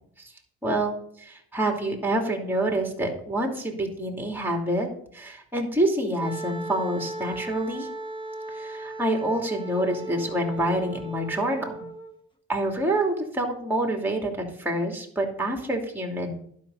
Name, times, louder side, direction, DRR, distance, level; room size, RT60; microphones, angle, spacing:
voice 1, 0.6-4.9 5.1-7.9 8.5-11.7 12.5-14.3 14.6-16.3, right 1 dB, 5° right, 1 dB, 2.7 m, -27 dB
Wind instrument woodwind instrument, 6.2-12.2, right 1 dB, 15° left, 1.2 m, -37 dB
11.5 x 5.4 x 6.4 m, 0.66 s
cardioid pair, 90°, 30 cm